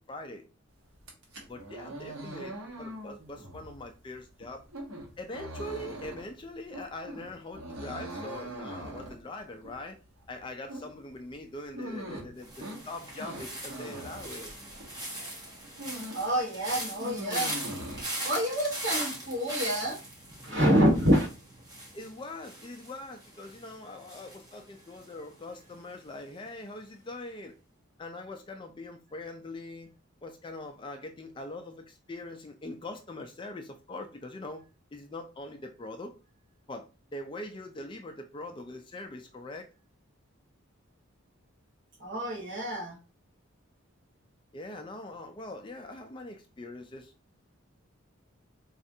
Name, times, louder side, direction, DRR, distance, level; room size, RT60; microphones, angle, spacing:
voice 1, 0.1-0.4 1.5-4.6 5.2-10.0 10.3-14.5 21.9-27.5 28.0-29.9 30.2-34.6 34.9-36.2 36.7-36.9 37.1-39.7 44.5-47.1, left 2 dB, 25° left, 0.3 m, -42 dB
sound 1, 0.9-15.0 15.4-16.3 16.6-18.0, right 1 dB, 80° right, 1.1 m, -42 dB
sound 2, 12.4-25.5 25.7-26.2, right 1 dB, 20° right, 0.9 m, -40 dB
voice 2, 16.1-17.5 18.2-20.0 20.4-21.3 42.0-43.0, equal, 60° right, 1.4 m, -27 dB
4.2 x 2.4 x 2.7 m
head